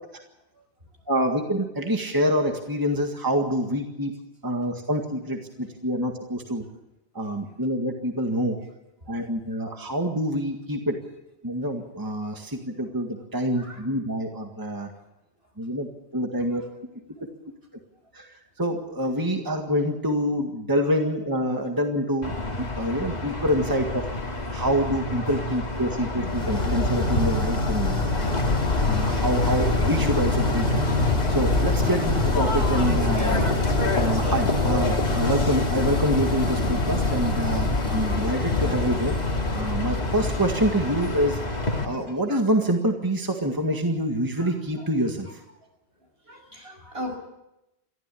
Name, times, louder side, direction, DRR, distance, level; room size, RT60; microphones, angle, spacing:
voice 1, 1.1-4.1 4.4-6.7 7.1-8.6 9.1-11.0 11.4-14.9 15.6-16.6 18.1-24.1 24.5-28.2 28.8-30.8 31.3-33.4 33.9-39.2 39.5-41.4 41.8-45.4, equal, 20° right, 3 dB, 1.9 m, -26 dB
sound 1, 22.2-41.8, left 2 dB, 40° left, 2.5 m, -29 dB
sound 2, 26.3-41.3, left 3 dB, 70° left, 2.7 m, -25 dB
voice 2, 41.7-42.4 44.4-44.9 46.2-47.2, equal, 65° right, 2 dB, 6.5 m, -40 dB
23.0 x 15.0 x 8.6 m, 0.92 s
omnidirectional pair, 1.1 m